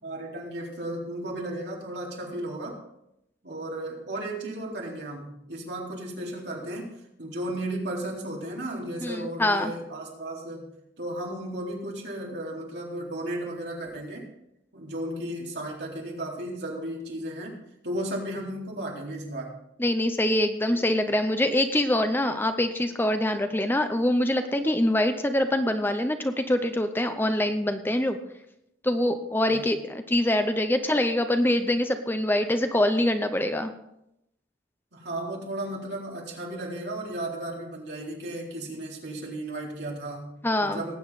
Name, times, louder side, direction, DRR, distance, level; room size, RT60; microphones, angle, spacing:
voice 1, 0.0-2.8 3.4-6.9 7.2-10.7 11.0-14.3 14.7-17.5 17.8-19.6 29.5-29.7 34.9-40.3 40.6-41.0, right 1 dB, 65° right, -3 dB, 3.8 m, -34 dB
voice 2, 9.0-9.7 19.8-28.2 28.8-33.7 40.4-40.8, left 1 dB, 10° left, 8 dB, 0.6 m, -24 dB
19.0 x 8.4 x 4.1 m, 0.82 s
head